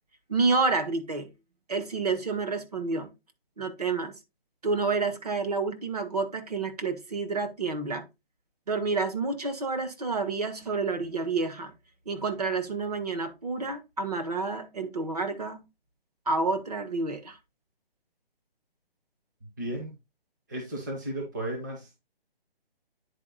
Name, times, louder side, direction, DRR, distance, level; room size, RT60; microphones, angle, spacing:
voice 1, 0.3-1.3 1.7-3.1 3.6-4.1 4.6-8.1 8.7-11.7 12.0-15.6 16.3-17.4, right 4 dB, 40° right, 1.4 m, -29 dB
voice 2, 19.6-19.9 20.5-22.0, right 1 dB, 20° right, 1.1 m, -34 dB
9.9 x 4.3 x 4.0 m
hypercardioid pair, 175°, 30 cm